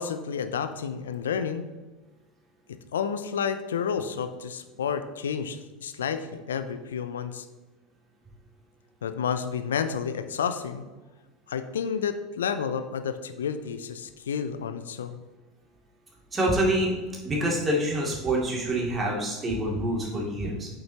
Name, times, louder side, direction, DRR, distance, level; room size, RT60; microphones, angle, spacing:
voice 1, 0.0-1.7 2.7-7.5 9.0-10.8 11.5-15.2, left 7 dB, 75° left, 11 dB, 0.4 m, -30 dB
voice 2, 16.3-16.9 17.2-20.7, right 1 dB, 25° right, -3 dB, 2.5 m, -26 dB
8.3 x 6.5 x 2.9 m, 1.2 s
figure-of-eight pair, 75°, 0 cm